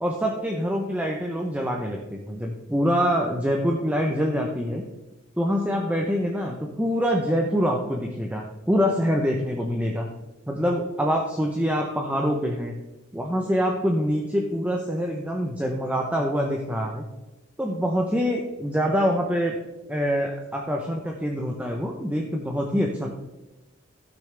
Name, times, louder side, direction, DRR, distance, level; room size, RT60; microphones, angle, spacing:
voice 1, 0.0-4.9 5.4-10.1 10.5-12.7 13.1-17.0 17.6-19.6 19.9-23.1, equal, 5° right, 0 dB, 0.7 m, -25 dB
15.5 x 6.4 x 3.4 m, 1.1 s
head